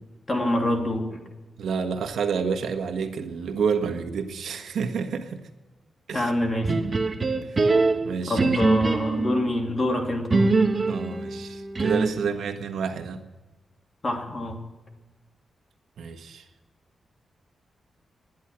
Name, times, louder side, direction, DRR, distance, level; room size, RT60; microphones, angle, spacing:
voice 1, 0.3-1.2 6.1-6.7 8.2-10.5 14.0-14.6, left 1 dB, 25° left, 3 dB, 2.8 m, -26 dB
voice 2, 1.6-5.4 6.1-6.3 7.4-7.7 8.0-8.5 10.9-13.2 16.0-16.4, right 6 dB, 80° right, 6 dB, 1.5 m, -29 dB
sound 1, 6.6-9.4 10.3-12.3, right 3 dB, 30° right, 1.2 m, -23 dB
20.5 x 10.5 x 6.3 m, 1.2 s
wide cardioid pair, 145°, 0 cm